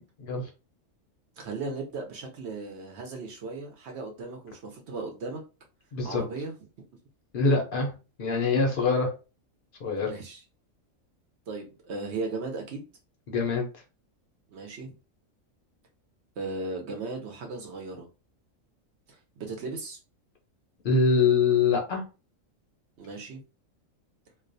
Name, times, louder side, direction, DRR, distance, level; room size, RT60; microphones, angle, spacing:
voice 1, 0.2-0.5 5.9-6.2 7.3-7.9 8.2-9.1 9.8-10.1 13.3-13.7 20.8-22.0, left 4 dB, 55° left, 2 dB, 0.6 m, -24 dB
voice 2, 1.4-5.4 6.0-6.5 10.0-10.4 11.5-12.9 14.5-14.9 16.4-18.1 19.1-20.0 23.0-23.4, right 3 dB, 65° right, 2 dB, 0.7 m, -36 dB
2.3 x 2.1 x 2.5 m, 0.31 s
omnidirectional pair, 1.4 m